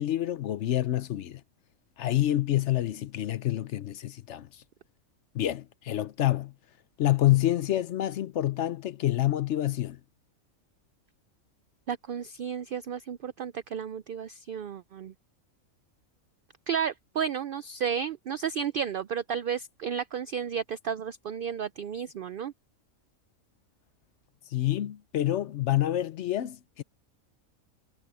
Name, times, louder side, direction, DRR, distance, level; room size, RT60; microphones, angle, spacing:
voice 1, 0.0-1.4 2.0-4.5 5.3-6.5 7.0-10.0 24.5-26.8, left 13 dB, 65° left, 0.9 m, -27 dB
voice 2, 11.9-15.1 16.7-22.5, right 7 dB, 75° right, 0.5 m, -32 dB
omnidirectional pair, 1.4 m